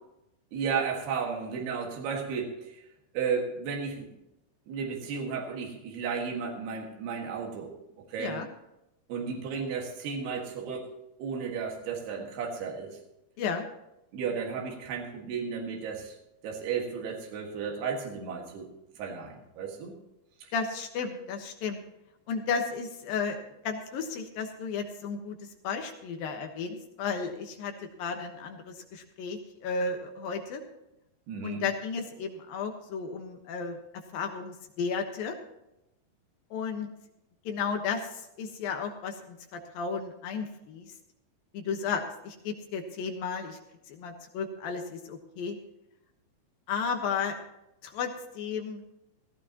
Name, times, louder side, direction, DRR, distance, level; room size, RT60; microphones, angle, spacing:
voice 1, 0.5-2.8 3.1-4.1 4.7-7.7 8.1-8.4 9.1-13.0 14.1-16.1 16.4-18.7 19.0-19.9 20.4-20.5 31.3-31.6, right 6 dB, 80° right, 0 dB, 3.9 m, -34 dB
voice 2, 20.5-21.8 22.3-23.4 23.6-30.6 31.4-35.4 36.5-36.9 37.4-40.9 41.5-43.6 43.9-45.6 46.7-47.4 47.8-48.8, left 5 dB, 70° left, 4 dB, 2.9 m, -33 dB
17.0 x 15.0 x 2.9 m, 0.87 s
omnidirectional pair, 4.6 m